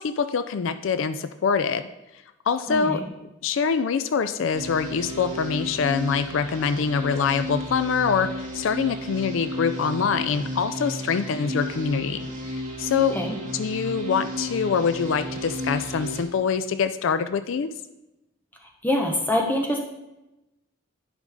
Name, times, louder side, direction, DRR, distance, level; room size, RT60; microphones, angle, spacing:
voice 1, 0.0-1.8 2.5-3.0 3.4-13.2 13.5-17.7, left 6 dB, 70° left, 11 dB, 0.4 m, -25 dB
voice 2, 2.7-3.0 13.1-13.4 18.8-19.8, left 1 dB, 10° left, 1 dB, 1.0 m, -24 dB
sound 1, 4.5-16.2, left 1 dB, 40° right, 2.2 m, -33 dB
10.5 x 5.3 x 3.6 m, 0.95 s
head